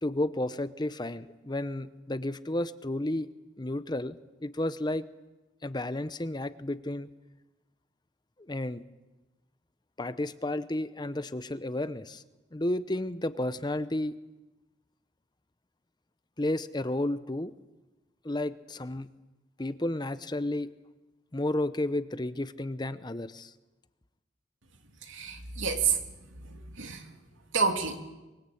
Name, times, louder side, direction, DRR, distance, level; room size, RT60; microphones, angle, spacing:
voice 1, 0.0-3.3 3.6-5.0 5.6-7.1 8.5-8.8 10.0-12.2 12.5-14.2 16.4-17.5 18.2-19.1 19.6-20.7 21.3-23.5, left 1 dB, 20° left, 13 dB, 0.8 m, -32 dB
voice 2, 25.0-26.0 26.3-27.1 27.5-28.0, right 5 dB, 75° right, 5 dB, 2.8 m, -29 dB
24.0 x 22.5 x 8.6 m, 1.1 s
head